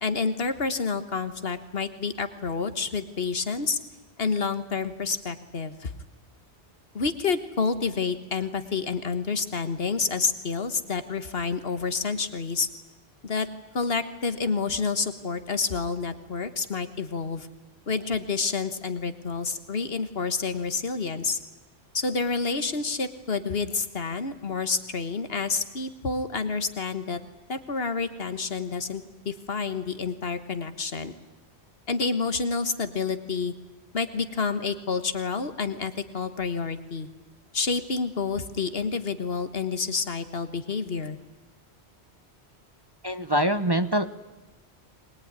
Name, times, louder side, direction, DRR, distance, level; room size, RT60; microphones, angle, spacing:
voice 1, 0.0-3.8 4.2-5.9 6.9-12.7 13.2-13.5 13.7-17.5 17.9-21.4 21.9-27.2 27.5-31.1 31.9-33.5 33.9-37.1 37.5-41.2, left 4 dB, 60° left, 10 dB, 1.6 m, -29 dB
voice 2, 43.0-44.1, equal, 25° right, 10 dB, 0.8 m, -24 dB
23.0 x 21.0 x 9.7 m, 1.1 s
omnidirectional pair, 1.1 m